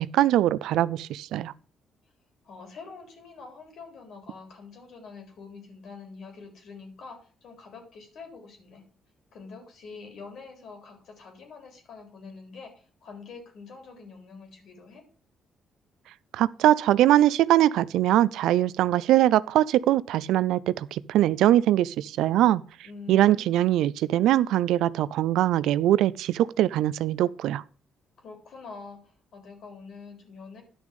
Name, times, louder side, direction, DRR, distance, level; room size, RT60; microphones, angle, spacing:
voice 1, 0.0-1.5 16.3-22.6 23.1-27.6, right 13 dB, 85° right, 0.4 m, -22 dB
voice 2, 2.4-8.9 9.3-15.0 22.8-23.7 28.2-30.6, left 4 dB, 70° left, 3.6 m, -45 dB
11.0 x 6.3 x 5.2 m
cardioid pair, 90°, 0 cm